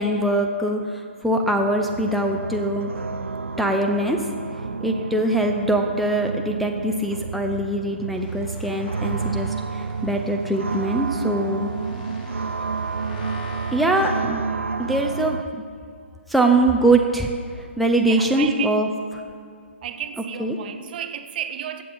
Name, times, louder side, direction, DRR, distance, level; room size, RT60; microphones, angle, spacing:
voice 1, 0.0-2.9 3.6-4.3 4.8-11.7 13.7-14.4 14.8-15.4 16.3-18.9 20.4-20.6, right 1 dB, ahead, 1 dB, 0.5 m, -22 dB
sound 1, 1.4-15.4, right 4 dB, 90° right, 0.4 m, -30 dB
voice 2, 4.9-5.2 11.9-12.4 18.0-18.8 19.8-21.8, right 9 dB, 45° right, 9 dB, 0.8 m, -33 dB
sound 2, 8.1-14.2, left 5 dB, 40° left, 1.3 m, -45 dB
15.0 x 7.5 x 4.3 m, 2.3 s
hypercardioid pair, 140°, 7 cm